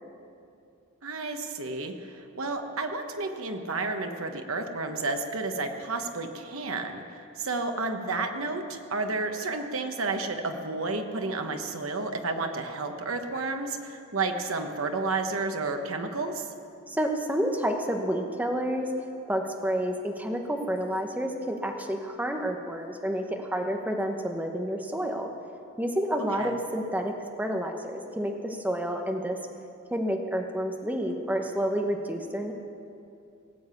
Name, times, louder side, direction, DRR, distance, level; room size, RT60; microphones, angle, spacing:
voice 1, 1.0-16.5 26.3-26.5, right 3 dB, 90° right, 5 dB, 1.2 m, -31 dB
voice 2, 16.9-25.3 25.8-29.4 29.9-32.5, equal, 10° right, 3 dB, 1.0 m, -29 dB
18.0 x 7.7 x 8.2 m, 2.6 s
head